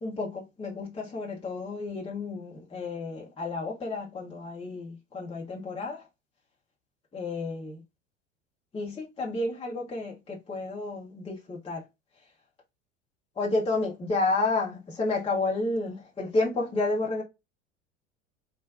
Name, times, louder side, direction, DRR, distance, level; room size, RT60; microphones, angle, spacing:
voice 1, 0.0-6.1 7.1-7.8 8.7-11.8 13.4-17.2, left 2 dB, 15° left, 0.8 m, -31 dB
3.5 x 2.1 x 2.3 m
figure-of-eight pair, 70°, 36 cm